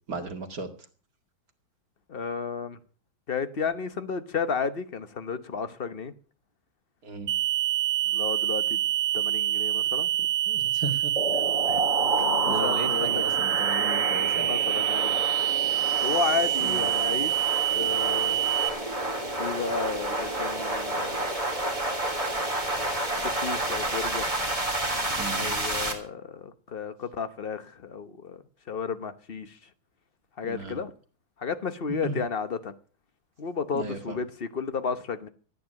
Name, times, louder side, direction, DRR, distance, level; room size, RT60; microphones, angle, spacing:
voice 1, 0.1-0.7 7.0-7.3 10.5-11.4 12.5-14.5 16.6-16.9 25.2-25.5 30.4-30.8 31.9-32.2 33.7-34.2, right 3 dB, 45° right, 2.6 m, -35 dB
voice 2, 2.1-2.8 3.3-6.1 8.1-8.8 9.1-10.3 11.6-13.2 14.1-14.2 14.4-15.2 16.0-18.4 19.4-21.3 23.0-24.4 25.3-29.7 30.4-30.9 31.4-32.7 33.4-35.3, left 5 dB, 40° left, 0.8 m, -33 dB
sound 1, 7.3-18.7, right 13 dB, 65° right, 0.7 m, -26 dB
sound 2, 11.2-25.9, right 1 dB, 15° right, 3.2 m, -30 dB
13.5 x 9.8 x 7.5 m
omnidirectional pair, 2.3 m